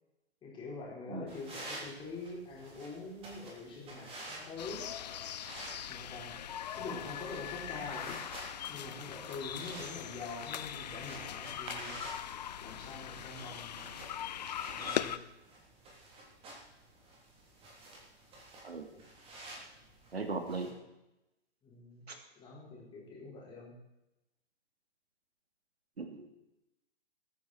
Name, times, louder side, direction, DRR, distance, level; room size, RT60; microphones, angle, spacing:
voice 1, 0.4-4.9 5.9-8.2 8.7-12.0 12.6-14.0 14.8-15.1 21.6-22.1 22.3-23.7, left 3 dB, 15° left, -4 dB, 4.8 m, -45 dB
voice 2, 1.1-1.4 18.6-18.9 20.1-20.7 22.1-22.2 26.0-26.3, right 3 dB, 70° right, 5 dB, 2.8 m, -38 dB
sound 1, 1.3-20.7, right 1 dB, 15° right, 3.4 m, -50 dB
sound 2, 4.6-15.2, left 10 dB, 40° left, 0.6 m, -41 dB
21.5 x 9.5 x 4.5 m, 0.93 s
figure-of-eight pair, 125°, 33 cm